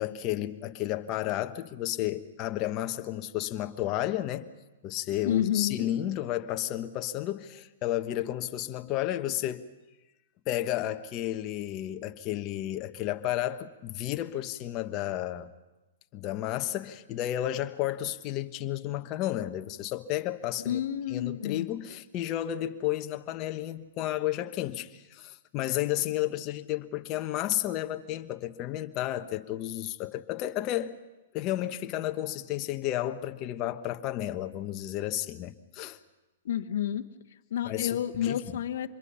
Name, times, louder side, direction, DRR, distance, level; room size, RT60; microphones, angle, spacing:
voice 1, 0.0-4.5 4.8-9.7 10.5-15.5 16.1-20.8 21.1-30.9 31.3-36.0 37.6-38.4, left 13 dB, 35° left, 1.1 m, -32 dB
voice 2, 5.2-5.9 20.6-21.7 36.4-37.1 37.5-38.9, left 10 dB, 70° left, 1.1 m, -29 dB
25.5 x 22.0 x 5.7 m
hypercardioid pair, 130°, 0 cm